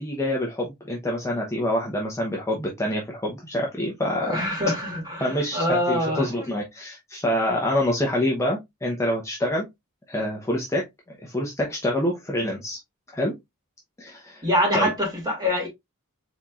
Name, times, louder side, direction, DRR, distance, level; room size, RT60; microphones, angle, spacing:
voice 1, 0.0-4.5 5.2-9.7 10.1-10.9 11.2-12.8 13.1-13.3 14.0-14.4 14.7-14.9, left 1 dB, 15° left, 0.8 m, -26 dB
voice 2, 4.2-6.5 14.4-15.7, left 1 dB, 20° right, 2.5 m, -25 dB
4.4 x 4.2 x 2.4 m
head